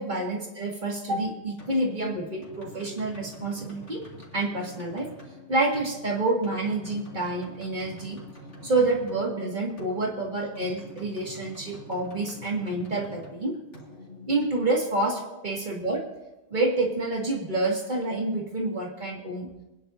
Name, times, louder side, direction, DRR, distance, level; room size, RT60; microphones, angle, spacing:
voice 1, 0.0-4.0 4.3-5.1 5.5-8.2 8.6-13.6 14.3-16.1 16.5-19.5, right 2 dB, 40° right, -1 dB, 2.3 m, -28 dB
sound 1, 1.6-15.1, left 1 dB, 70° left, 2.8 m, -46 dB
27.0 x 10.0 x 2.8 m, 1.0 s
omnidirectional pair, 1.3 m